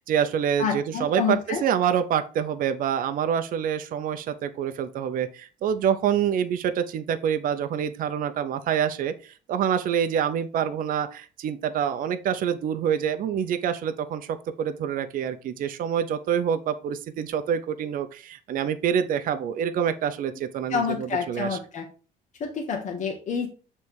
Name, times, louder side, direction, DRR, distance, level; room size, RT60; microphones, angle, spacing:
voice 1, 0.0-9.1 9.5-21.6, right 8 dB, 55° right, 9 dB, 0.6 m, -26 dB
voice 2, 0.6-1.6 20.7-21.9 22.4-23.5, left 6 dB, 45° left, 1 dB, 1.1 m, -28 dB
6.8 x 3.2 x 4.6 m, 0.36 s
cardioid pair, 110°, 17 cm